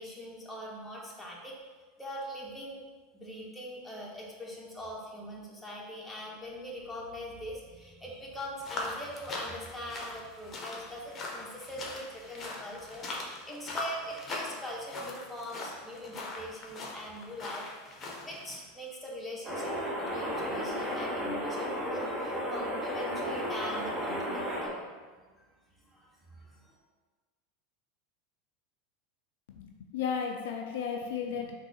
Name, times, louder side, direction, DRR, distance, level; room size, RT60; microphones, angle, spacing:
voice 1, 0.0-1.6 2.0-2.8 3.1-24.9 25.9-26.8, equal, 5° left, -4 dB, 1.2 m, -42 dB
sound 1, 8.6-18.6, left 2 dB, 30° left, 0.9 m, -41 dB
sound 2, 19.4-24.7, equal, 15° right, 1.2 m, -33 dB
voice 2, 29.5-31.6, left 7 dB, 70° left, 2 dB, 0.4 m, -34 dB
4.0 x 2.6 x 4.7 m, 1.4 s
hypercardioid pair, 85°, 0 cm